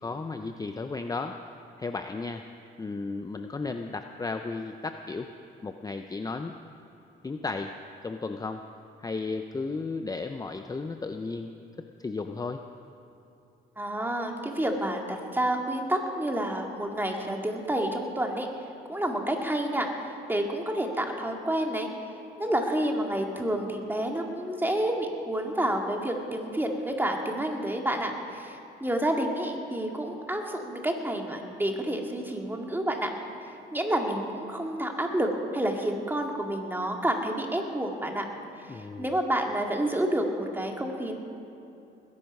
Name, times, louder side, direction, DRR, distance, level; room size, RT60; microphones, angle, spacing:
voice 1, 0.0-1.4 1.8-2.4 2.8-5.3 5.6-6.5 7.2-7.7 8.0-8.7 9.0-12.6 38.7-39.1, left 3 dB, 20° left, 6 dB, 0.6 m, -34 dB
voice 2, 13.8-18.5 18.9-21.9 22.4-33.1 33.7-38.2 38.7-41.2, right 1 dB, 10° right, 2 dB, 2.1 m, -29 dB
20.5 x 10.5 x 5.4 m, 2.9 s
cardioid pair, 90°, 20 cm